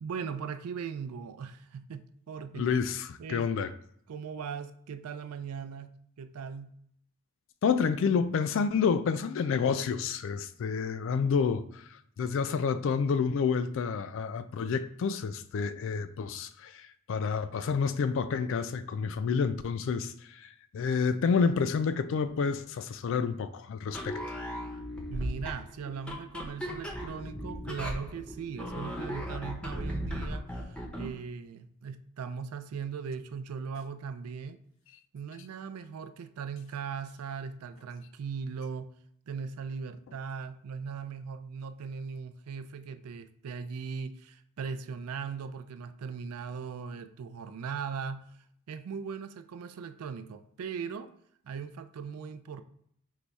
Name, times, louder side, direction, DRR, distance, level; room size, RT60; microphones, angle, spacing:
voice 1, 0.0-2.7 3.2-3.5 4.1-6.7 25.1-34.6 35.1-38.9 39.3-48.3 48.7-51.1 51.4-52.6, right 6 dB, 85° right, 0.4 m, -39 dB
voice 2, 2.5-3.7 7.6-24.4, left 5 dB, 60° left, 0.3 m, -29 dB
sound 1, 23.9-31.2, equal, 5° left, 0.5 m, -37 dB
4.7 x 2.2 x 4.0 m
head